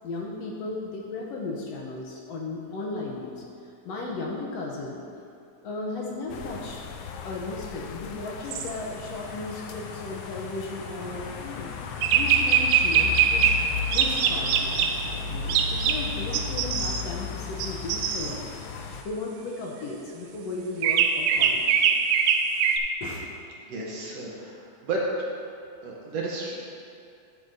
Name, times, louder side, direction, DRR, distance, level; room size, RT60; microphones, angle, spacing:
voice 1, 0.0-3.3 3.9-5.0 5.6-6.8 7.2-11.7 12.1-13.6 13.9-18.5 19.0-21.8 23.0-23.3, left 2 dB, 70° left, -2 dB, 1.8 m, -35 dB
sound 1, 6.3-19.0, left 6 dB, 90° left, 1.3 m, -35 dB
sound 2, 8.5-8.7 12.0-13.7 13.9-15.0 15.5-16.1 16.3-17.0 17.6-18.4 20.8-22.8, right 7 dB, 85° right, 2.0 m, -22 dB
voice 2, 23.7-25.1 25.8-26.6, right 3 dB, 65° right, -3 dB, 2.0 m, -32 dB
11.5 x 8.1 x 2.7 m, 2.5 s
omnidirectional pair, 3.4 m